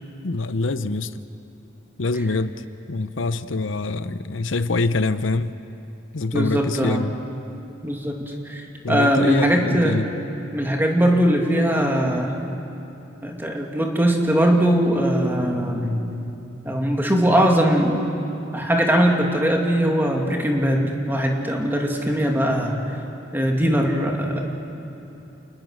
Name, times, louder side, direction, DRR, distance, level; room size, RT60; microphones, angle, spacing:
voice 1, 0.2-1.1 2.0-2.6 2.9-5.5 6.1-7.1 8.8-10.1, left 3 dB, 80° left, 13 dB, 0.8 m, -25 dB
voice 2, 6.3-7.1 7.8-8.2 8.4-10.0 10.5-12.4 13.2-16.1 16.6-18.0 18.5-22.8 23.3-24.5, equal, 10° right, 1 dB, 2.4 m, -20 dB
29.0 x 20.0 x 6.5 m, 3.0 s
head